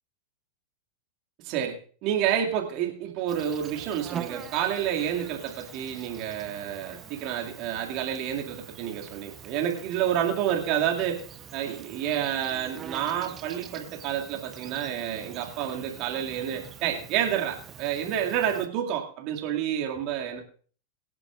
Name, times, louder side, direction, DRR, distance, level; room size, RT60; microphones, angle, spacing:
voice 1, 1.4-1.8 2.0-11.2 11.5-20.4, right 10 dB, 40° right, 2 dB, 2.3 m, -29 dB
Insect, 3.3-18.7, right 8 dB, 25° right, 0.9 m, -44 dB
23.0 x 9.9 x 2.5 m, 0.42 s
figure-of-eight pair, 90°, 0 cm